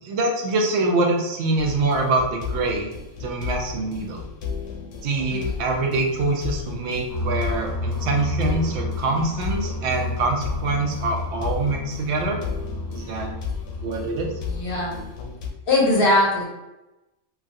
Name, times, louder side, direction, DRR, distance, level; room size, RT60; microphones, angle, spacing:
voice 1, 0.0-2.9 3.2-4.3 5.0-12.4 12.9-13.3 13.8-14.3, right 2 dB, 70° right, 2 dB, 0.8 m, -24 dB
sound 1, 1.6-15.5, left 6 dB, 85° left, 0.9 m, -34 dB
sound 2, 7.1-15.1, left 1 dB, 20° left, 0.7 m, -32 dB
voice 2, 14.5-15.0 15.7-16.4, left 2 dB, 55° left, -2 dB, 0.7 m, -21 dB
3.0 x 2.3 x 2.6 m, 0.98 s
omnidirectional pair, 1.3 m